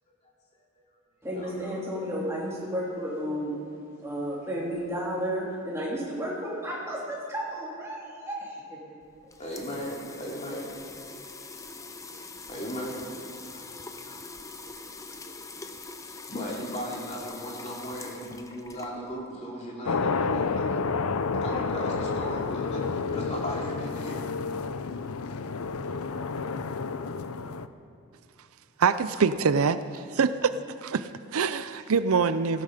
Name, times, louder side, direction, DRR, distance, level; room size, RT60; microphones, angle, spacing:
voice 1, 1.2-3.6 4.0-8.8, equal, 10° right, -6 dB, 3.4 m, -32 dB
sound 1, 9.0-19.3, left 3 dB, 15° left, 0.6 m, -43 dB
voice 2, 9.4-10.8 12.1-13.1 13.5-14.2 14.6-14.7 15.1-15.7 16.0-20.8 21.4-24.3 25.2-25.3, equal, 30° left, -3 dB, 2.8 m, -37 dB
sound 2, 19.8-27.7, left 4 dB, 80° left, 0.6 m, -30 dB
voice 3, 28.8-30.5 30.8-32.6, right 5 dB, 75° right, 13 dB, 0.5 m, -25 dB
18.0 x 15.5 x 5.1 m, 2.4 s
head